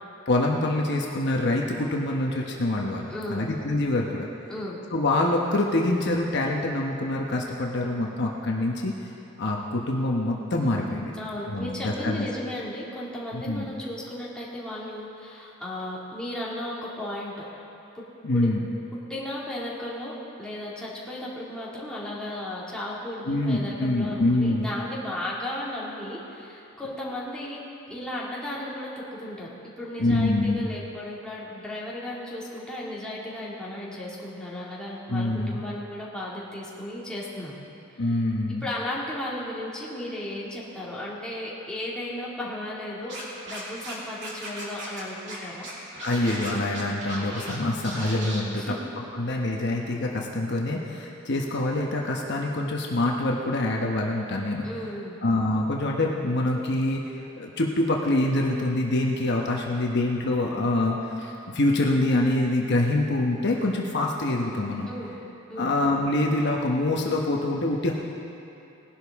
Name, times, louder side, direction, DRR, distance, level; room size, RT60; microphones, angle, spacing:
voice 1, 0.3-4.3 4.9-8.9 9.4-11.1 11.5-12.3 13.3-13.7 18.2-18.7 23.3-24.7 30.0-30.7 35.1-35.6 38.0-38.7 46.0-48.7 49.1-54.7 55.2-57.0 57.4-64.9 65.6-67.9, left 2 dB, 55° left, -1 dB, 1.1 m, -25 dB
voice 2, 3.1-3.5 4.5-4.8 11.2-17.4 17.9-18.0 18.3-18.5 19.1-27.6 27.9-37.6 38.6-43.2 43.5-45.7 48.5-48.8 54.6-55.2 64.9-65.1 65.5-65.7, left 1 dB, 5° left, -7 dB, 2.4 m, -35 dB
Scratching (performance technique), 43.1-43.9 44.2-45.0 45.3-45.4 45.6-47.6 47.8-48.4, right 1 dB, 60° right, 2.7 m, -36 dB
19.5 x 11.5 x 3.6 m, 3.0 s
head